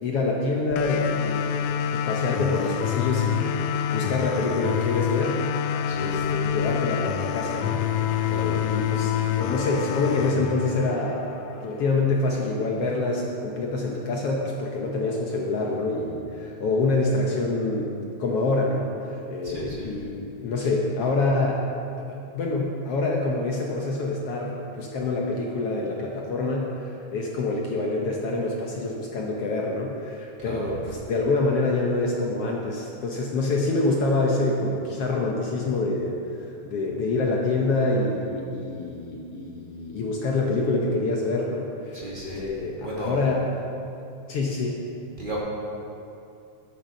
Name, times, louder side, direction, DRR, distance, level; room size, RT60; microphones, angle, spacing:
voice 1, 0.0-5.4 6.0-11.3 11.5-17.9 18.2-21.6 22.0-26.9 27.1-42.1 42.3-43.4 44.3-44.8, left 2 dB, 65° left, -1 dB, 1.6 m, -26 dB
sound 1, 0.8-11.7, left 9 dB, 80° left, 1.5 m, -27 dB
voice 2, 5.8-6.4 8.2-8.6 19.4-19.9 30.4-30.7 41.9-42.6 42.8-43.2 45.2-45.4, equal, 15° right, -6 dB, 2.1 m, -34 dB
12.0 x 8.4 x 6.3 m, 2.7 s
omnidirectional pair, 3.6 m